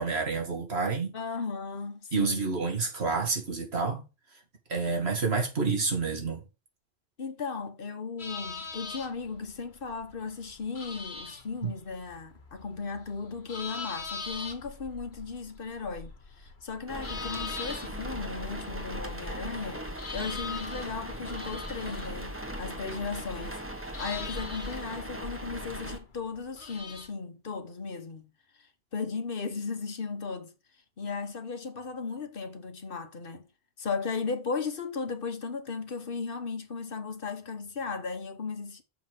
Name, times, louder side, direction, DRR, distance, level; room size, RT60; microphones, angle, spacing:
voice 1, 0.0-1.1 2.1-4.0 4.7-6.4 11.6-11.7, right 4 dB, 90° right, 2.5 m, -29 dB
voice 2, 1.1-2.5 7.2-28.3 28.6-28.7 28.9-30.5 31.0-33.5 33.8-38.8, left 4 dB, 60° left, 1.4 m, -36 dB
sound 1, 8.2-27.1, left 4 dB, 80° left, 1.6 m, -43 dB
sound 2, 16.9-26.0, equal, 10° right, 1.3 m, -38 dB
6.9 x 5.5 x 6.0 m
omnidirectional pair, 1.1 m